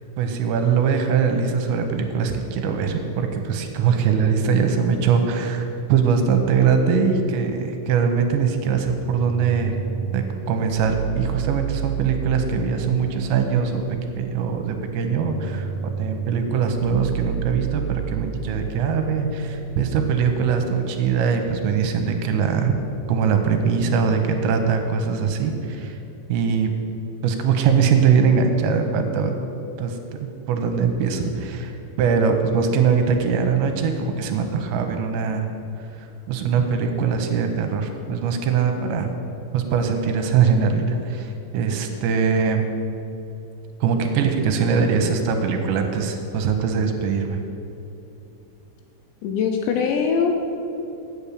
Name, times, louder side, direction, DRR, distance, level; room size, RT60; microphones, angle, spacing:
voice 1, 0.2-9.7 10.1-13.8 14.2-22.7 23.1-26.0 26.3-26.7 27.2-29.3 29.8-30.0 30.5-35.5 36.0-39.1 39.5-42.6 43.8-47.4, right 6 dB, 80° right, 5 dB, 2.8 m, -22 dB
sound 1, 9.0-20.9, right 5 dB, 35° left, 1.9 m, -31 dB
voice 2, 49.2-50.4, left 6 dB, 80° left, 3 dB, 2.7 m, -22 dB
8.3 x 7.0 x 8.5 m, 2.9 s
omnidirectional pair, 5.5 m